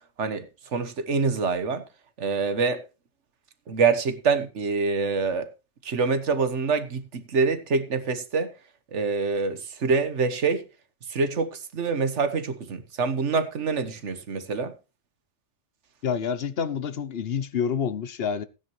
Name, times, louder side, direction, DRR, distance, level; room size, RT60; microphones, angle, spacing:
voice 1, 0.2-1.8 2.2-2.8 3.7-5.5 5.8-8.5 8.9-10.6 11.1-14.7, right 4 dB, 85° right, 1.5 m, -25 dB
voice 2, 16.0-18.4, left 7 dB, 60° left, 1.0 m, -28 dB
15.5 x 9.7 x 3.2 m
omnidirectional pair, 1.2 m